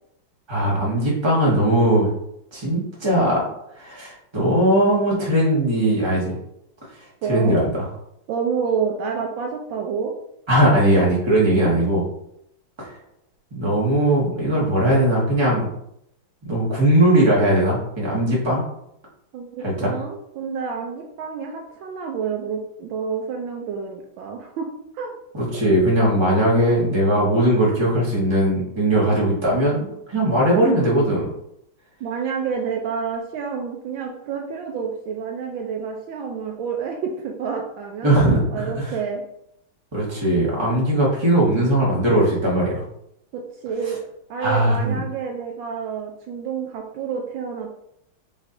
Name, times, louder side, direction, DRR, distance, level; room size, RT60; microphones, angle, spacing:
voice 1, 0.5-2.1 2.5-3.4 3.8-6.3 7.3-7.8 10.5-12.0 12.8-12.9 13.5-15.7 16.4-18.7 19.6-19.9 25.3-31.3 38.0-38.9 39.9-42.8 44.4-45.0, right 1 dB, 15° right, -5 dB, 1.2 m, -19 dB
voice 2, 7.2-7.6 8.3-10.1 19.3-25.2 32.0-38.1 38.5-39.2 43.3-44.0 44.3-47.7, right 6 dB, 75° right, 1 dB, 1.3 m, -29 dB
5.6 x 3.1 x 2.6 m, 0.76 s
omnidirectional pair, 2.3 m